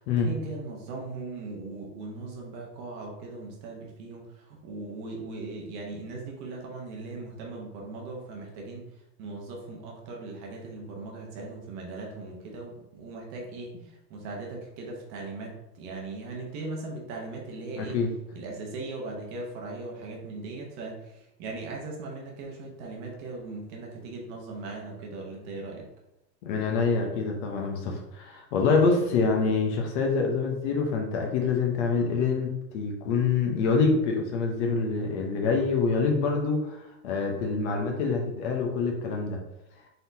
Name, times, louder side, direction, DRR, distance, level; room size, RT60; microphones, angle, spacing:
voice 1, 0.0-18.0 18.3-25.9 28.7-29.3, right 3 dB, 35° right, -1 dB, 0.9 m, -39 dB
voice 2, 17.8-18.1 26.4-39.4, left 4 dB, 45° left, 1 dB, 0.8 m, -26 dB
4.1 x 3.8 x 2.7 m, 0.87 s
supercardioid pair, 150°, 50 cm